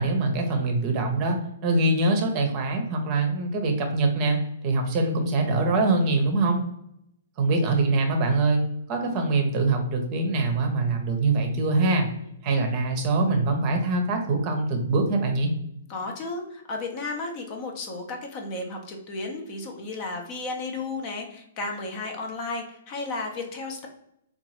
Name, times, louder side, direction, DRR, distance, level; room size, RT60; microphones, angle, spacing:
voice 1, 0.0-1.4 1.6-4.4 4.6-6.6 7.4-8.6 8.9-12.1 12.4-15.5, right 3 dB, 30° right, 3 dB, 0.7 m, -23 dB
voice 2, 15.9-23.9, left 3 dB, 35° left, 3 dB, 0.6 m, -33 dB
3.7 x 2.4 x 2.9 m, 0.78 s
figure-of-eight pair, 115°, 0 cm